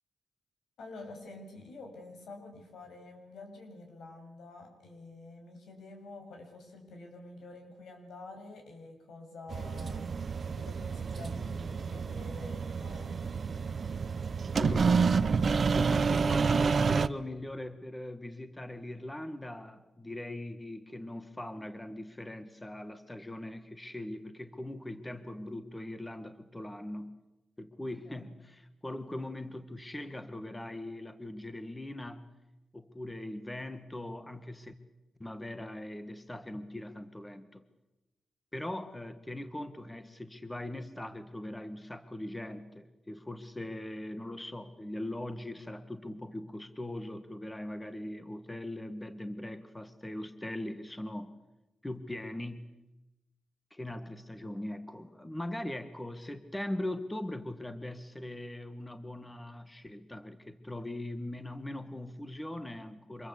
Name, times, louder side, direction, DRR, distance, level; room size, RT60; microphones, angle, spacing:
voice 1, 0.8-10.0 10.6-13.1 28.1-28.3, left 2 dB, 80° left, 3 dB, 7.4 m, -48 dB
sound 1, 9.5-17.1, right 5 dB, 50° right, 0.9 m, -29 dB
voice 2, 14.6-15.1 15.7-27.2 27.6-32.3 32.7-34.7 35.2-37.6 38.5-51.3 51.8-52.7 53.7-63.3, left 1 dB, 15° left, 9 dB, 1.7 m, -40 dB
26.0 x 21.5 x 8.4 m, 0.99 s
cardioid pair, 85°, 0 cm